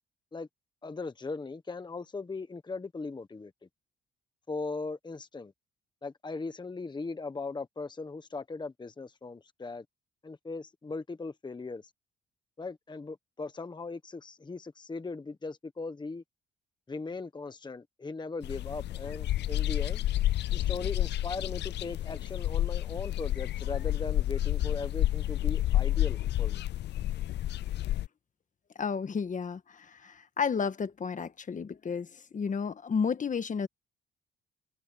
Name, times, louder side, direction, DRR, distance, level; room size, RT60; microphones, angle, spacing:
voice 1, 0.8-3.5 4.5-5.5 6.0-9.8 10.2-11.9 12.6-16.2 16.9-20.0 20.5-26.6, left 3 dB, 20° left, 1.2 m, -39 dB
sound 1, 18.4-28.1, left 14 dB, 60° left, 0.4 m, -30 dB
voice 2, 28.8-33.7, left 6 dB, 40° left, 1.5 m, -32 dB
cardioid pair, 90°, 20 cm